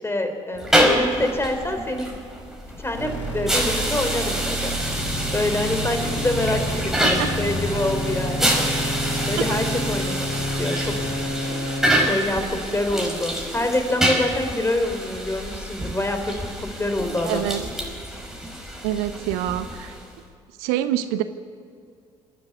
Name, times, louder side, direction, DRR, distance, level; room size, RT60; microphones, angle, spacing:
voice 1, 0.0-2.2 2.8-4.7 5.3-8.5 9.3-10.9 11.9-17.4, left 1 dB, 15° left, 6 dB, 3.8 m, -26 dB
sound 1, 0.5-20.2, equal, 5° right, 5.2 m, -27 dB
sound 2, 2.9-12.0, equal, 80° left, 5.0 m, -28 dB
voice 2, 17.2-17.6 18.8-19.9 20.6-21.2, right 12 dB, 70° right, 11 dB, 0.8 m, -26 dB
27.5 x 9.8 x 9.7 m, 2.4 s
figure-of-eight pair, 50°, 16 cm